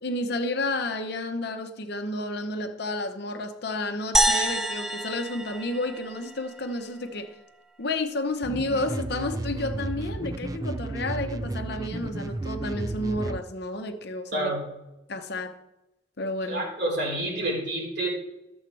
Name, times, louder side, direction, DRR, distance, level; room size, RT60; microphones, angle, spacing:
voice 1, 0.0-7.3 7.8-14.5 15.1-15.6 16.2-16.6, left 2 dB, 55° left, 1.0 m, -31 dB
sound 1, 4.1-6.6, right 1 dB, ahead, 0.7 m, -26 dB
sound 2, 8.4-13.4, right 2 dB, 20° right, 0.3 m, -33 dB
voice 2, 14.3-14.7 16.5-18.1, right 1 dB, 60° right, 3.7 m, -28 dB
12.5 x 7.2 x 4.7 m
head